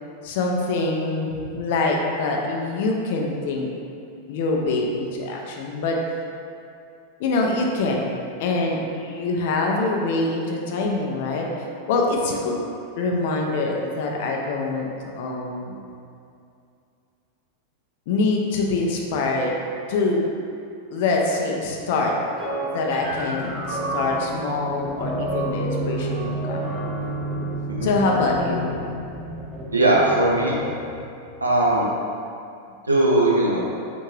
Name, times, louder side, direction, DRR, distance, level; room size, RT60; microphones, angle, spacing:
voice 1, 0.2-3.7 4.3-6.0 7.2-11.5 11.9-12.6 13.0-14.9 15.2-15.8 18.1-19.5 19.9-20.2 20.9-22.1 22.7-26.7 27.8-28.7, left 3 dB, 50° left, 0 dB, 0.5 m, -24 dB
sound 1, 22.4-27.6, right 1 dB, 30° right, 1.2 m, -31 dB
sound 2, 23.0-31.7, right 1 dB, 5° right, 0.5 m, -32 dB
voice 2, 29.7-30.6 31.4-31.9 32.9-33.6, right 2 dB, 80° right, -4 dB, 0.6 m, -19 dB
3.4 x 2.7 x 3.1 m, 2.5 s
figure-of-eight pair, 90°, 0 cm